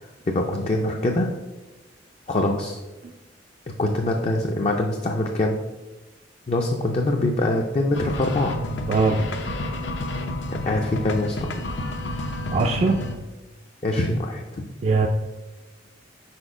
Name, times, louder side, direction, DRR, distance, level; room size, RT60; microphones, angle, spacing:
voice 1, 0.0-1.3 2.3-2.8 3.8-5.6 6.5-8.5 10.5-11.5 13.8-14.6, left 2 dB, 35° left, 1 dB, 0.4 m, -24 dB
sound 1, 7.9-13.1, left 1 dB, 75° left, 0.7 m, -30 dB
voice 2, 8.9-9.2 12.5-13.0 14.8-15.1, right 3 dB, 35° right, 2 dB, 0.3 m, -20 dB
4.9 x 4.3 x 4.8 m, 1.1 s
head